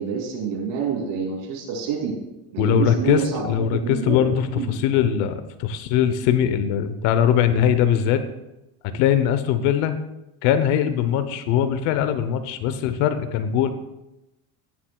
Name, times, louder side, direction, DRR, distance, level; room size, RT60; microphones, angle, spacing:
voice 1, 0.0-2.2 2.5-4.2 4.5-4.7, right 6 dB, 75° right, 0 dB, 3.0 m, -27 dB
voice 2, 2.6-8.2 8.8-10.0 10.4-13.7, left 9 dB, 70° left, 10 dB, 0.9 m, -21 dB
15.5 x 7.5 x 2.3 m, 0.93 s
cardioid pair, 130°, 47 cm